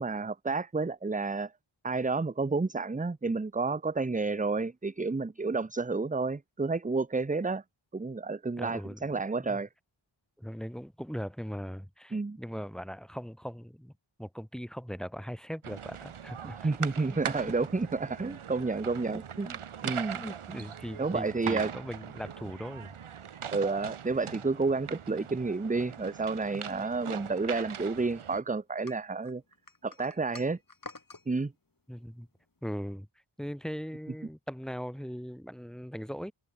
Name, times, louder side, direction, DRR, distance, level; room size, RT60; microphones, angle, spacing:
voice 1, 0.0-1.5 1.8-7.6 7.9-9.7 12.1-12.4 16.6-19.6 19.8-20.2 20.5-20.6 21.0-21.7 23.5-29.4 29.8-30.6 31.3-31.5, right 3 dB, 15° right, 0.6 m, -30 dB
voice 2, 8.6-9.6 10.4-13.9 14.2-16.7 17.1-17.2 19.1-19.2 20.1-22.9 31.9-32.3 32.6-33.1 33.4-36.3, equal, ahead, 2.7 m, -40 dB
sound 1, 15.6-28.4, right 8 dB, 80° right, 1.0 m, -41 dB
sound 2, 28.9-31.3, left 3 dB, 40° left, 3.8 m, -48 dB
open air
wide cardioid pair, 65°, 49 cm